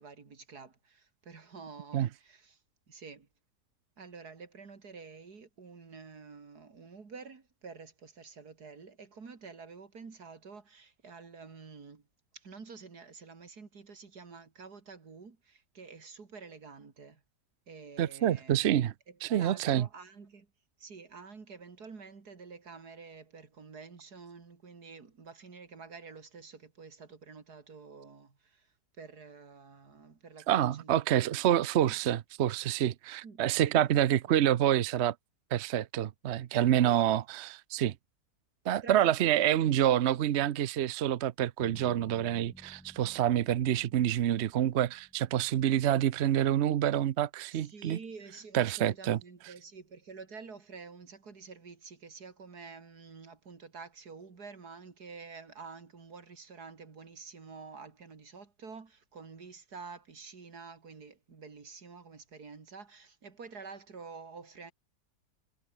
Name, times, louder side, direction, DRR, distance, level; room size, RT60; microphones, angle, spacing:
voice 1, 0.0-2.6 2.9-3.3 4.0-12.0 12.3-17.2 17.7-18.6 19.1-20.5 20.8-31.1 33.2-33.4 33.7-33.9 36.8-37.1 38.8-39.8 47.5-64.7, right 5 dB, 80° right, 3.2 m, -49 dB
voice 2, 18.0-18.9 19.2-19.9 30.5-35.1 35.5-37.9 38.6-48.0 48.5-49.2, right 11 dB, 55° right, 0.8 m, -27 dB
Bass guitar, 41.6-45.6, equal, ahead, 3.1 m, -54 dB
omnidirectional pair, 1.7 m